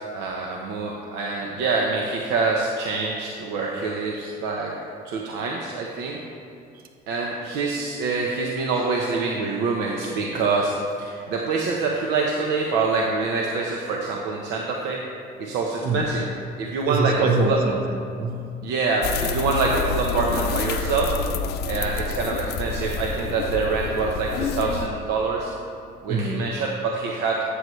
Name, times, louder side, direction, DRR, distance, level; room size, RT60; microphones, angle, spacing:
voice 1, 0.0-4.7 5.0-6.2 7.1-10.7 11.0-15.0 15.4-16.3 16.6-17.6 18.6-21.1 21.7-25.5 26.0-27.4, right 4 dB, 85° right, -1 dB, 0.9 m, -25 dB
voice 2, 15.8-16.2 16.9-18.7 26.1-26.5, right 2 dB, 60° right, 4 dB, 1.0 m, -25 dB
sound 1, 19.0-24.9, left 5 dB, 75° left, 0.6 m, -28 dB
13.0 x 8.1 x 3.2 m, 2.4 s
cardioid pair, 110°, 17 cm